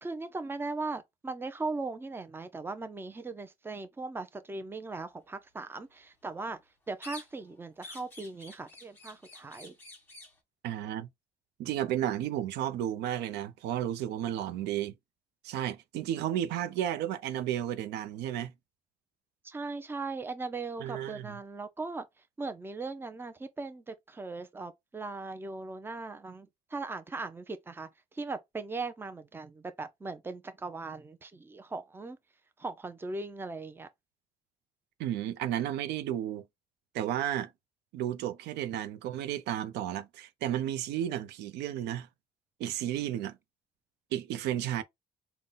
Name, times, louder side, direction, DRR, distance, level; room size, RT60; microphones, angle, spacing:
voice 1, 0.0-6.6 6.9-9.7 19.4-22.1 22.4-32.2 32.6-33.9, right 3 dB, 15° right, 0.5 m, -39 dB
sound 1, 7.0-7.5 7.8-10.4, left 3 dB, 10° left, 1.3 m, -49 dB
voice 2, 10.6-11.1 11.6-14.9 15.4-18.5 20.8-21.3 35.0-36.4 36.9-37.5 37.9-42.1 42.6-43.4 44.1-44.8, right 11 dB, 80° right, 0.5 m, -33 dB
3.8 x 2.2 x 3.7 m
cardioid pair, 110°, 17 cm